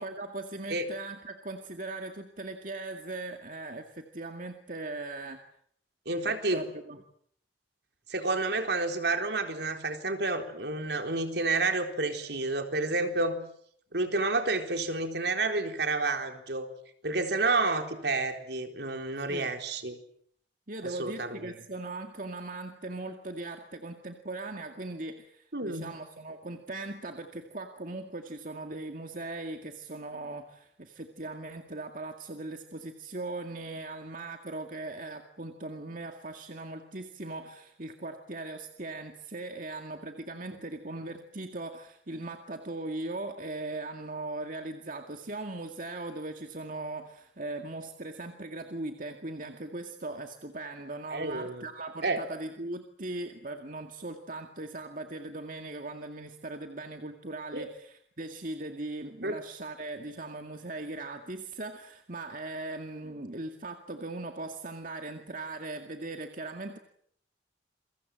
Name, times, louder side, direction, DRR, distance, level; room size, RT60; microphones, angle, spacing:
voice 1, 0.0-5.4 6.2-7.0 19.3-19.5 20.7-66.8, right 2 dB, 45° right, 4 dB, 2.1 m, -39 dB
voice 2, 6.1-6.6 8.1-13.4 13.9-16.7 17.0-20.0 20.8-21.5 25.5-25.9 51.1-51.6 52.0-52.2 57.5-57.6 59.2-59.4, right 3 dB, 65° right, 5 dB, 4.0 m, -30 dB
28.5 x 23.5 x 7.7 m, 0.66 s
head